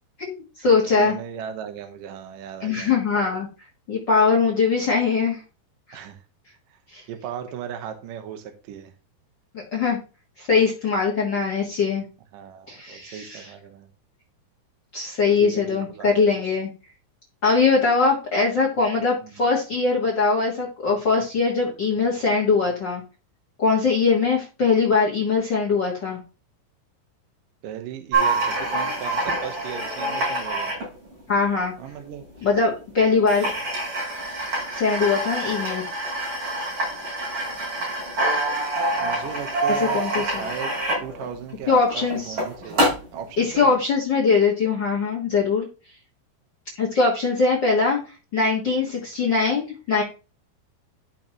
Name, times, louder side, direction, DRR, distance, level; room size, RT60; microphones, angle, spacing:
voice 1, 0.2-1.2 2.6-3.5 3.9-5.4 5.9-6.0 6.9-7.0 9.5-10.0 10.4-12.0 12.7-13.5 14.9-16.7 17.4-23.0 23.6-26.2 31.3-31.7 32.4-33.4 34.7-35.8 39.7-40.5 41.7-42.3 43.4-45.7 46.8-50.0, left 4 dB, 60° left, -1 dB, 1.2 m, -21 dB
voice 2, 0.9-2.9 5.9-6.2 6.7-6.8 7.1-8.9 12.3-13.9 15.4-16.6 19.2-19.3 27.6-30.7 31.8-32.2 33.4-33.6 39.0-40.7 41.0-43.8 49.0-49.1, right 8 dB, 70° right, 6 dB, 2.3 m, -37 dB
sound 1, 28.1-31.8 32.6-32.7 33.0-33.1 33.3-43.2, right 2 dB, 55° right, 6.7 m, -26 dB
13.5 x 5.8 x 3.0 m, 0.33 s
omnidirectional pair, 4.7 m